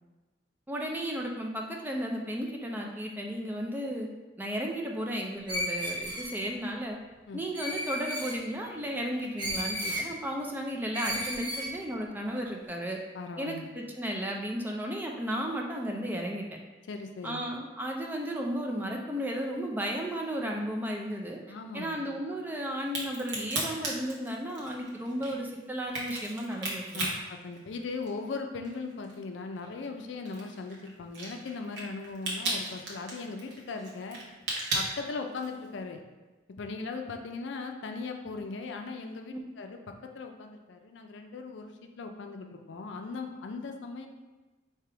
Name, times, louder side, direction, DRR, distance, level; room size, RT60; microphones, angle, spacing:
voice 1, 0.7-4.1 4.4-7.0 7.3-13.0 13.4-16.4 17.2-21.4 21.7-27.1 39.3-39.4, equal, 10° right, 0 dB, 0.4 m, -34 dB
Screech, 5.5-6.5 7.5-8.4 9.4-10.1 10.9-11.7, equal, 25° right, 0.8 m, -33 dB
voice 2, 13.1-13.7 16.9-17.4 21.5-22.0 26.9-34.2 34.7-36.0 36.6-39.8 40.1-44.1, left 4 dB, 75° left, 4 dB, 0.4 m, -39 dB
Crack, 22.8-28.3 28.6-35.7, right 2 dB, 60° right, 1.0 m, -35 dB
3.4 x 2.9 x 4.6 m, 1.2 s
head